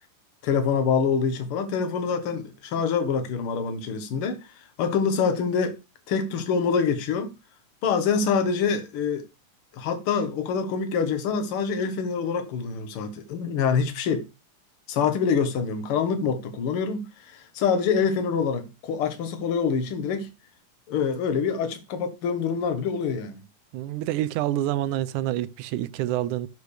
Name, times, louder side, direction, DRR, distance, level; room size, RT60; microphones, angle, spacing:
voice 1, 0.4-4.4 4.8-5.8 6.1-7.3 7.8-9.3 9.7-14.2 14.9-20.3 20.9-23.4, left 6 dB, 55° left, 1.7 m, -25 dB
voice 2, 23.7-26.5, right 13 dB, 80° right, 2.0 m, -27 dB
14.5 x 6.6 x 3.3 m
omnidirectional pair, 3.6 m